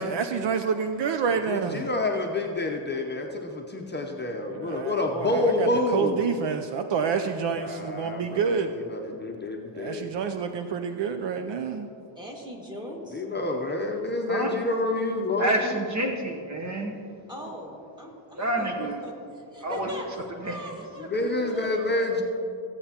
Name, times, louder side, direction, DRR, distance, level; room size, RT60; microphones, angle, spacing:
voice 1, 0.0-1.9 4.5-8.7 9.7-11.9, right 6 dB, 60° right, 7 dB, 0.6 m, -28 dB
voice 2, 1.5-6.2 7.5-10.2 13.1-15.8 21.1-22.2, left 2 dB, 20° left, 1 dB, 0.7 m, -28 dB
voice 3, 12.2-13.3 17.3-20.1 20.4-21.1 21.4-22.2, equal, 10° right, -2 dB, 1.9 m, -40 dB
voice 4, 15.4-16.9 18.4-19.0 19.6-19.9 20.4-20.6 21.4-21.5, right 1 dB, 35° right, 2 dB, 0.9 m, -28 dB
16.0 x 8.1 x 2.9 m, 2.5 s
cardioid pair, 115°, 50 cm